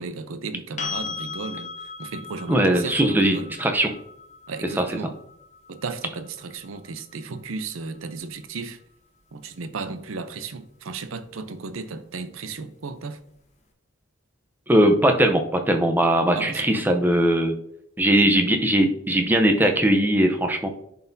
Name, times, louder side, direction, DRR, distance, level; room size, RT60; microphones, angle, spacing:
voice 1, 0.0-1.7 2.0-3.5 4.5-5.2 5.7-8.8 9.3-13.2 16.3-16.9, right 4 dB, 75° right, 0.6 m, -34 dB
sound 1, 0.8-8.6 11.4-11.5, left 5 dB, 35° left, 1.0 m, -39 dB
voice 2, 2.5-3.9 4.8-4.9 14.7-17.5 18.0-20.7, right 1 dB, 10° right, 0.6 m, -20 dB
10.5 x 4.1 x 2.7 m
head